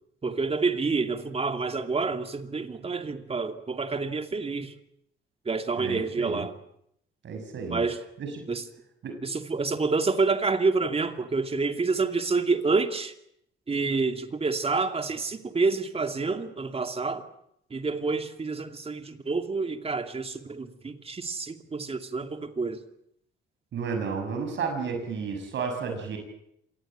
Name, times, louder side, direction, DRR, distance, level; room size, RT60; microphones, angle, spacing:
voice 1, 0.2-4.7 5.5-6.5 7.7-8.0 8.5-8.6 9.2-13.1 13.7-17.2 17.7-22.8, right 4 dB, 30° right, 2.5 m, -28 dB
voice 2, 5.8-6.4 7.2-7.8 8.2-8.3 9.0-9.2 23.7-26.2, right 5 dB, 65° right, 6.2 m, -32 dB
26.5 x 18.5 x 8.9 m
cardioid pair, 90°, 20 cm